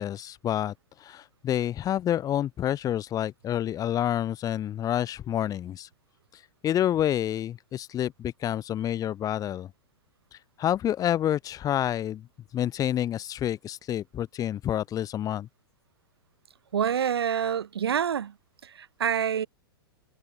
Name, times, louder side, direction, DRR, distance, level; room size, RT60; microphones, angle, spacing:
voice 1, 0.0-5.9 6.3-9.7 10.3-12.2 12.5-15.5, left 11 dB, 30° left, 4.4 m, -28 dB
voice 2, 16.7-18.3 18.6-19.5, right 8 dB, 80° right, 4.9 m, -27 dB
hypercardioid pair, 115°, 13 cm